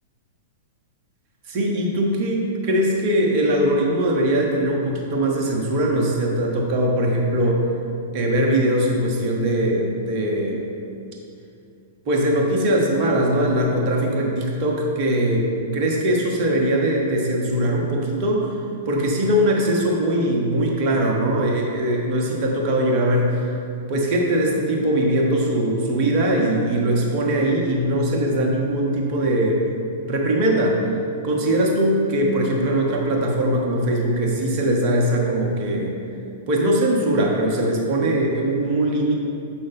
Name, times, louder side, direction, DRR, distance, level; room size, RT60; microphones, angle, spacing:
voice 1, 1.5-7.6 8.1-10.7 12.1-15.5 15.7-18.5 18.9-23.4 23.9-29.6 30.1-30.8 31.2-35.9 36.5-39.1, right 1 dB, 40° right, -1 dB, 1.1 m, -21 dB
6.5 x 5.4 x 3.6 m, 2.6 s
figure-of-eight pair, 100°, 0 cm